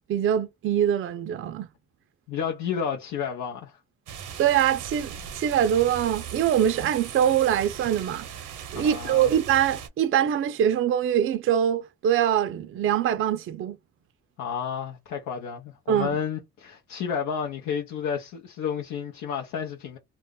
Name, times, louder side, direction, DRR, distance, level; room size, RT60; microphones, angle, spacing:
voice 1, 0.1-1.7 4.4-8.3 8.7-13.8 15.9-16.2, right 10 dB, 45° right, 0.4 m, -23 dB
voice 2, 2.3-3.8 8.7-9.3 14.4-20.0, left 7 dB, 80° left, 0.6 m, -31 dB
sound 1, 4.1-9.9, right 8 dB, 85° right, 0.7 m, -39 dB
2.3 x 2.0 x 3.5 m
cardioid pair, 90°, 30 cm